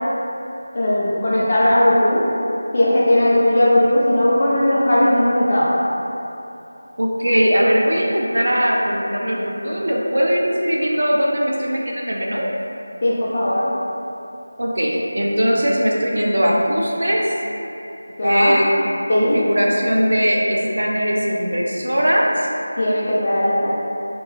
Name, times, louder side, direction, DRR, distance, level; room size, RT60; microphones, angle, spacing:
voice 1, 0.7-2.2 2.7-5.7 13.0-13.7 18.2-18.5 19.1-19.4 22.8-23.7, left 1 dB, 35° left, -8 dB, 0.3 m, -17 dB
voice 2, 7.0-12.5 14.6-17.2 18.2-18.7 19.1-22.5, equal, 65° right, -3 dB, 0.4 m, -20 dB
3.0 x 2.5 x 2.2 m, 2.9 s
figure-of-eight pair, 165°, 0 cm